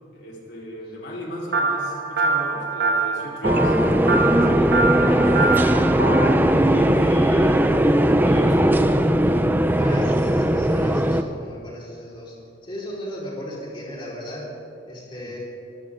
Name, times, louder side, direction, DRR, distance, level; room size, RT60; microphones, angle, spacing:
voice 1, 0.1-3.7 4.3-6.0 6.4-7.8 8.2-9.0 15.2-15.3, equal, 60° left, -3 dB, 4.3 m, -36 dB
sound 1, 1.5-6.3, right 3 dB, 55° right, 1.9 m, -24 dB
sound 2, 3.4-11.2, right 1 dB, 10° right, 0.6 m, -18 dB
voice 2, 9.8-12.4 12.6-14.5 14.9-15.4, equal, 25° left, -5 dB, 4.6 m, -36 dB
25.0 x 14.0 x 3.8 m, 2.6 s
head